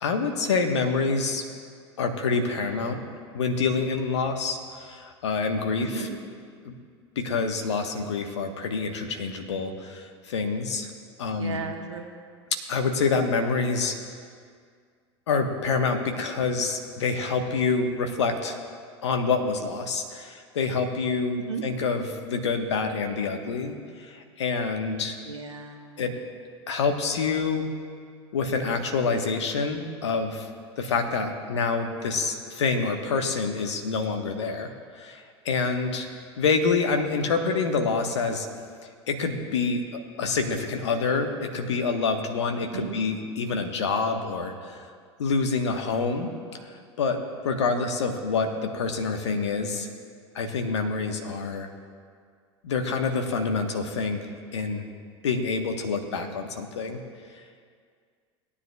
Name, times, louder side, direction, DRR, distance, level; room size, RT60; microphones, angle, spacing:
voice 1, 0.0-1.4 2.0-3.0 3.3-6.1 6.6-6.7 7.2-10.9 11.2-11.7 12.7-13.9 15.3-18.6 19.0-25.2 26.0-26.1 26.7-27.6 28.3-30.5 30.8-36.1 36.4-38.5 39.1-39.8 40.2-44.8 45.2-46.3 47.0-47.2 47.4-49.9 50.3-51.7 52.6-54.2 54.5-54.9 55.2-57.0, left 4 dB, 75° left, 5 dB, 1.2 m, -27 dB
voice 2, 5.8-6.2 11.4-12.1 21.5-21.6 25.3-26.0 42.7-42.9, right 5 dB, 90° right, 3 dB, 1.1 m, -34 dB
18.5 x 9.8 x 2.3 m, 2.1 s
hypercardioid pair, 80°, 15 cm